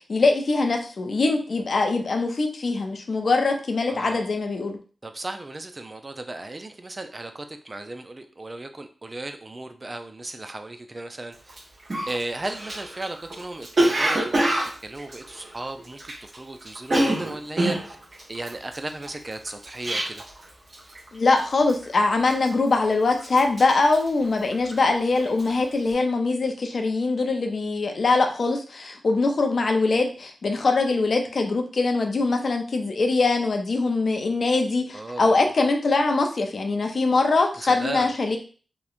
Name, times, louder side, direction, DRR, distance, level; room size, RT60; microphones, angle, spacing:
voice 1, 0.0-4.8 21.1-38.4, left 3 dB, 65° left, 4 dB, 0.4 m, -22 dB
voice 2, 3.9-4.3 5.0-11.6 12.1-14.4 14.8-18.0 18.3-20.2 34.9-35.3 37.6-38.1, right 2 dB, 35° right, 7 dB, 0.4 m, -35 dB
Cough, 11.5-11.6 11.9-16.4 16.6-20.4 20.7-21.1 21.4-21.8 22.3-22.9 23.2-24.9 25.2-25.5, right 1 dB, 55° right, 0.9 m, -26 dB
2.8 x 2.1 x 2.4 m, 0.39 s
cardioid pair, 40°, 0 cm